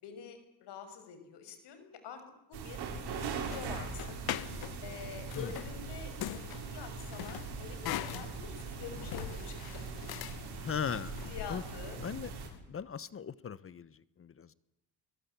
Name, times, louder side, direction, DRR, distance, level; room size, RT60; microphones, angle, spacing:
voice 1, 0.0-2.2 2.5-2.9 3.3-4.2 4.8-10.3 11.3-12.0, left 7 dB, 80° left, 8 dB, 6.3 m, -47 dB
sound 1, 2.5-12.5, right 7 dB, 70° right, 6.3 m, -42 dB
sound 2, 2.9-12.6, left 12 dB, 65° left, 1.2 m, -43 dB
voice 2, 10.6-11.2 11.5-11.6 12.0-12.3 12.7-14.5, left 7 dB, 35° left, 18 dB, 1.0 m, -38 dB
23.5 x 23.5 x 8.3 m, 0.86 s
cardioid pair, 135°, 40 cm